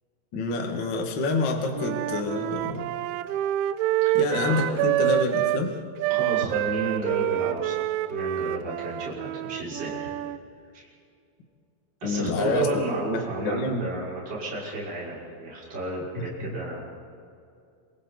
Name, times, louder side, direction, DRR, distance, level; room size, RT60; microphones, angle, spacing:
voice 1, 0.3-2.9 4.1-5.7 12.0-12.8 13.1-13.9 16.2-16.6, left 2 dB, 55° left, 2 dB, 1.2 m, -27 dB
Wind instrument woodwind instrument, 1.7-5.6 6.0-10.4, right 13 dB, 85° right, 2.7 m, -27 dB
voice 2, 6.1-7.8 8.1-10.1 10.7-10.9 12.0-16.8, right 2 dB, 20° right, -7 dB, 6.2 m, -32 dB
28.0 x 25.0 x 4.1 m, 2.5 s
omnidirectional pair, 5.9 m